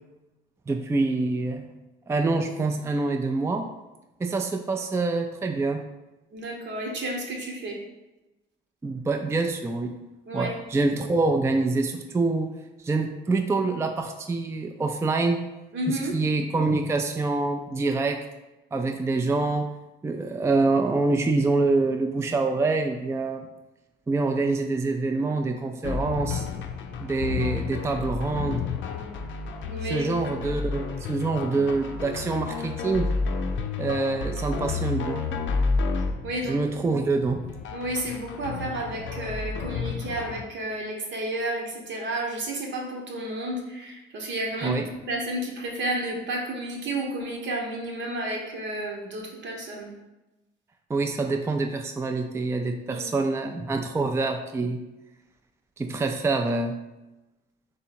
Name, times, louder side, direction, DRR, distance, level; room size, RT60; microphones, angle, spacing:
voice 1, 0.7-1.7 2.1-3.7 4.2-5.8 8.8-9.9 10.3-12.5 12.8-15.4 15.9-18.2 18.7-19.7 20.0-23.4 24.1-26.5 27.0-28.6 29.9-33.1 33.8-35.4 36.4-37.5 44.6-44.8 50.9-54.8 55.8-56.8, right 3 dB, 15° right, 5 dB, 0.3 m, -26 dB
voice 2, 6.3-7.8 10.3-10.5 15.7-16.2 29.7-30.1 36.2-36.9 37.7-44.8 45.1-49.9 52.9-53.0, right 1 dB, 70° right, 0 dB, 1.1 m, -31 dB
sound 1, 25.8-40.4, left 4 dB, 75° left, 0.5 m, -31 dB
3.7 x 2.8 x 4.2 m, 1.0 s
cardioid pair, 90°, 20 cm